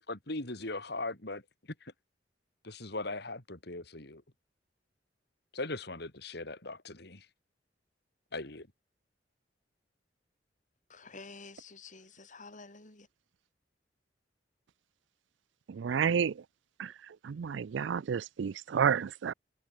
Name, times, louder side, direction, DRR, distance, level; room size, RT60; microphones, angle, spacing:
voice 1, 0.0-1.4 2.6-4.2 5.5-7.3 8.3-8.7, left 2 dB, 65° left, 4.2 m, -39 dB
voice 2, 10.9-13.1, left 4 dB, 45° left, 4.7 m, -50 dB
voice 3, 15.7-16.4 16.8-19.3, right 7 dB, 85° right, 0.4 m, -31 dB
head